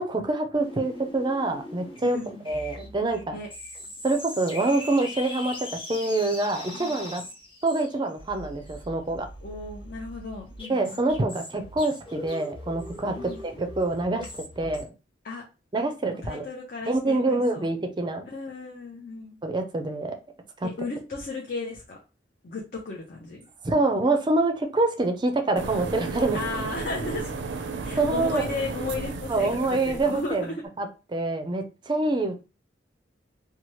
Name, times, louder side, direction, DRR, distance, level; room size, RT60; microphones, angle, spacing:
voice 1, 0.0-2.2 2.5-3.4 4.0-7.2 7.6-9.3 10.7-14.9 15.7-16.5 16.9-18.3 19.4-20.2 20.6-20.7 23.6-26.4 28.0-28.4 29.3-30.5 30.8-32.4, right 2 dB, 25° right, 5 dB, 0.4 m, -26 dB
sound 1, 0.5-14.8, left 1 dB, 30° left, 1.2 m, -41 dB
voice 2, 2.0-2.4 3.3-3.5 6.7-6.9 9.4-11.0 13.2-13.4 15.2-15.4 16.2-17.7 18.3-19.4 20.6-22.0 22.4-23.4 26.3-27.3 27.8-30.6, left 3 dB, 50° left, -2 dB, 0.6 m, -35 dB
sound 2, 25.6-30.3, right 3 dB, 80° right, 0.4 m, -34 dB
2.9 x 2.2 x 3.0 m, 0.30 s
head